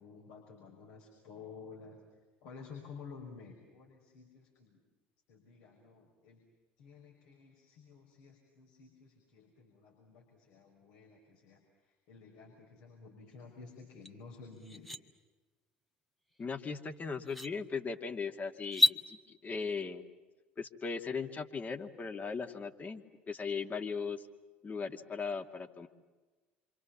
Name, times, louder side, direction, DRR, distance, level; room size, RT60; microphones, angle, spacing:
voice 1, 0.0-2.0 2.4-4.8 5.3-6.4 6.8-14.9, left 5 dB, 65° left, -1 dB, 5.8 m, -52 dB
sound 1, 14.0-14.1 14.6-15.0 16.6-16.7 17.2-17.5 18.6-19.0, left 1 dB, 5° left, 1.7 m, -29 dB
voice 2, 16.4-20.0 20.6-24.3 24.6-25.9, left 5 dB, 30° left, 5 dB, 2.5 m, -38 dB
28.0 x 26.5 x 7.4 m, 1.3 s
hypercardioid pair, 65°, 6 cm